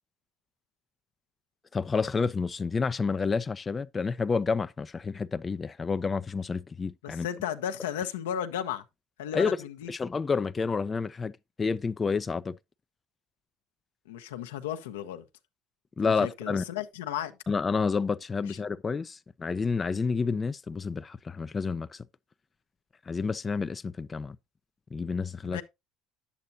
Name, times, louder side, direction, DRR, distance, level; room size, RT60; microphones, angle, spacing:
voice 1, 1.7-7.3 9.3-9.6 9.9-11.3 11.6-12.6 16.0-16.6 17.5-22.0 23.0-24.4 24.9-25.6, left 5 dB, 30° left, 0.5 m, -29 dB
voice 2, 7.0-8.8 9.2-9.9 14.1-15.2 16.0-17.4 25.4-25.6, left 10 dB, 90° left, 1.0 m, -34 dB
10.5 x 8.3 x 2.7 m
hypercardioid pair, 75°, 0 cm